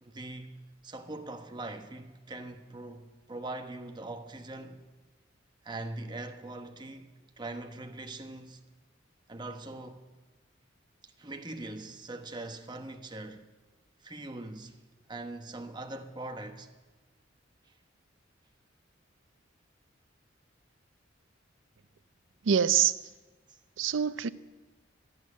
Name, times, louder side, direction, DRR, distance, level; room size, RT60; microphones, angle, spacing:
voice 1, 0.0-4.9 5.6-8.6 9.3-10.0 11.0-13.5 14.0-14.8 15.1-16.7 17.6-17.7 23.5-23.6, right 2 dB, 25° right, 1.0 m, -42 dB
voice 2, 22.4-23.0 23.8-24.3, right 8 dB, 80° right, 0.5 m, -25 dB
13.0 x 11.5 x 8.6 m
head